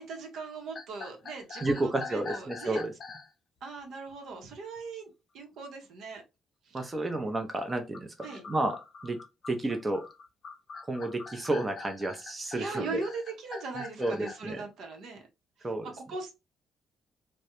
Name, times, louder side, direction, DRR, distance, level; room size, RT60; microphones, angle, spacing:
voice 1, 0.0-2.8 3.6-6.2 6.6-6.9 8.2-8.4 12.5-15.3 15.6-16.3, right 3 dB, 75° right, 0.7 m, -40 dB
sound 1, 0.7-3.3 7.7-14.4, left 4 dB, 50° left, 0.5 m, -44 dB
voice 2, 1.6-2.9 6.7-8.8 9.0-9.2 9.5-10.0 10.9-13.0 14.0-14.6 15.6-15.9, right 2 dB, 25° right, 0.5 m, -31 dB
2.3 x 2.0 x 2.9 m
cardioid pair, 90°, 0 cm